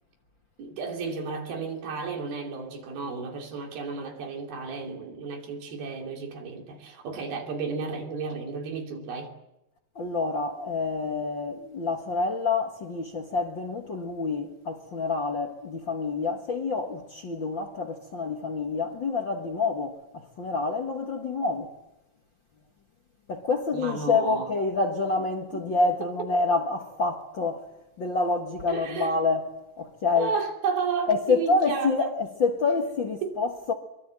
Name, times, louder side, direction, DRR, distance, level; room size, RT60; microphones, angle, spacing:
voice 1, 0.6-9.3 23.7-24.5 25.5-25.8 28.7-29.1 30.2-32.1 33.2-33.4, right 5 dB, 80° right, 5.0 m, -33 dB
voice 2, 9.9-21.7 23.3-27.7 28.0-29.5 29.8-30.3 31.1-33.7, left 3 dB, 50° left, 1.6 m, -27 dB
24.0 x 23.5 x 7.7 m
omnidirectional pair, 4.2 m